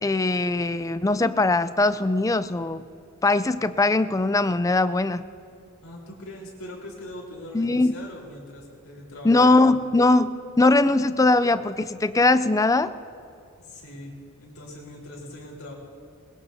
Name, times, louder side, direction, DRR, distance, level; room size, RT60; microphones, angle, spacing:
voice 1, 0.0-2.8 3.2-5.2 7.5-7.9 9.2-12.9, left 2 dB, 15° left, 13 dB, 0.4 m, -21 dB
voice 2, 5.8-9.3 9.8-10.0 13.6-15.7, left 1 dB, 70° left, -3 dB, 4.0 m, -41 dB
21.5 x 20.0 x 2.7 m, 2.5 s
head